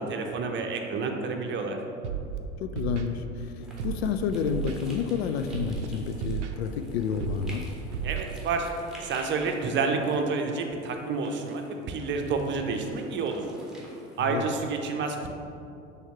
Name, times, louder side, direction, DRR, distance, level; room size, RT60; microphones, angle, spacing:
voice 1, 0.0-1.8 8.0-8.7 9.0-13.4 14.2-15.3, right 4 dB, 30° right, 4 dB, 0.7 m, -29 dB
Scratching (performance technique), 2.0-2.4 2.8-3.1 3.8-4.1 4.5-4.8 5.5-5.9 6.2-6.5 7.2-7.5 7.9-8.2, right 8 dB, 75° right, 0.6 m, -32 dB
voice 2, 2.6-7.7 14.2-14.4, left 7 dB, 60° left, 8 dB, 0.5 m, -30 dB
sound 1, 3.6-14.7, right 1 dB, ahead, 1.3 m, -50 dB
7.0 x 3.4 x 5.8 m, 2.7 s
figure-of-eight pair, 70°, 36 cm